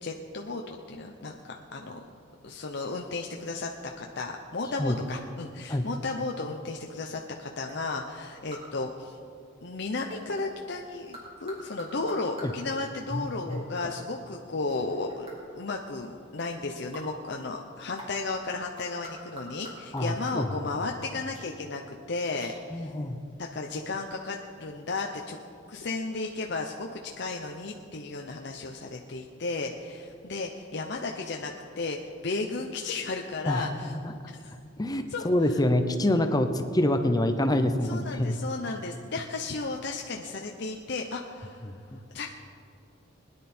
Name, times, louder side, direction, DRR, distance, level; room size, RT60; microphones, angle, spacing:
voice 1, 0.0-2.0 2.4-9.2 9.6-15.3 15.5-22.9 23.4-25.4 25.7-33.9 34.3-34.5 35.1-35.6 37.8-41.6 42.1-42.3, left 3 dB, 60° left, 2 dB, 0.7 m, -34 dB
sound 1, 3.8-4.1 4.9-5.4 7.7-7.8 8.5-8.8 10.1-10.8 11.1-12.6 13.2-13.9 14.7-15.4 16.9-17.1 18.0-18.2 18.7-20.5 21.3-21.5 22.1-22.2 22.4-22.6, right 1 dB, 30° right, 3.4 m, -47 dB
voice 2, 13.1-13.6 19.9-20.5 22.7-23.2 33.5-34.1 34.8-38.4 41.6-42.0, left 1 dB, 20° left, 8 dB, 0.7 m, -26 dB
20.0 x 10.5 x 4.4 m, 2.4 s
head